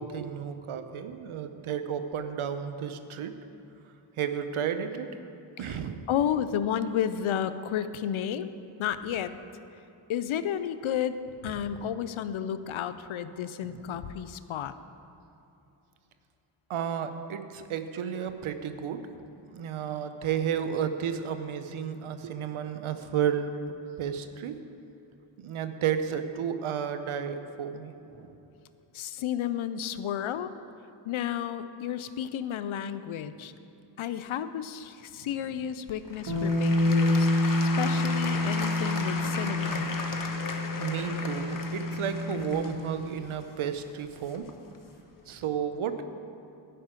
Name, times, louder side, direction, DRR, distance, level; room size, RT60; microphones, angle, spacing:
voice 1, 0.0-3.3 4.2-5.1 5.6-6.1 13.7-14.0 16.7-19.3 19.5-24.5 25.4-28.4 35.2-35.3 38.1-38.5 40.8-44.5 45.3-46.0, right 8 dB, 85° right, 9 dB, 0.8 m, -32 dB
voice 2, 6.1-8.5 8.8-9.3 10.1-11.2 11.4-14.7 28.9-30.5 31.0-33.5 34.0-37.3 37.6-40.0, left 9 dB, 80° left, 12 dB, 0.7 m, -32 dB
Applause / Crowd, 35.9-44.8 45.4-45.5, left 4 dB, 40° left, 1.1 m, -36 dB
Bass guitar, 36.3-42.5, left 2 dB, 55° right, 2.6 m, -27 dB
11.5 x 5.7 x 8.9 m, 2.9 s
cardioid pair, 55°, 48 cm